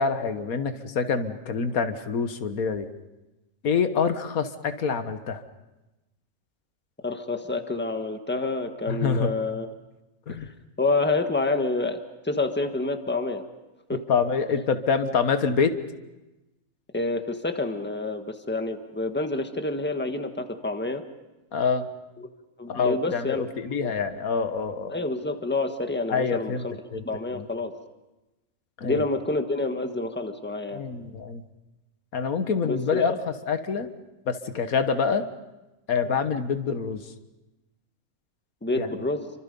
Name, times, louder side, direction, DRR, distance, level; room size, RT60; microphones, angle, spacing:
voice 1, 0.0-2.9 3.6-5.4 8.9-9.3 10.3-10.5 14.1-15.7 21.5-21.9 22.7-25.0 26.1-26.7 26.9-27.0 27.3-27.4 28.8-29.1 30.7-31.4 32.1-33.1 33.5-33.9 34.3-35.2 35.9-37.0 38.8-38.9, left 5 dB, 85° left, 9 dB, 1.8 m, -26 dB
voice 2, 7.0-9.7 10.3-10.5 10.8-13.4 13.9-14.0 16.9-21.0 22.2-22.3 22.6-24.0 24.9-26.7 27.0-27.7 28.8-30.8 32.6-33.2 38.6-39.3, left 2 dB, 10° left, 6 dB, 1.4 m, -28 dB
29.0 x 25.0 x 5.4 m, 1.0 s
omnidirectional pair, 1.5 m